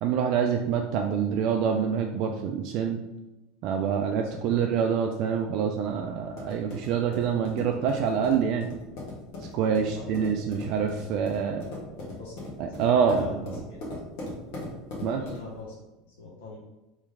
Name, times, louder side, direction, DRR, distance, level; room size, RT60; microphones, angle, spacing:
voice 1, 0.0-3.0 3.6-8.7 9.5-11.6 12.6-13.6 15.0-15.2, right 7 dB, 55° right, 3 dB, 0.3 m, -26 dB
voice 2, 4.3-4.7 9.8-10.1 12.1-12.5 13.0-13.4 13.7-13.8 15.0-15.7 16.0-16.6, left 3 dB, 80° left, -4 dB, 0.8 m, -43 dB
sound 1, 5.9-15.6, left 2 dB, 65° left, 1.2 m, -40 dB
3.1 x 3.1 x 3.6 m, 1.0 s
hypercardioid pair, 90°, 0 cm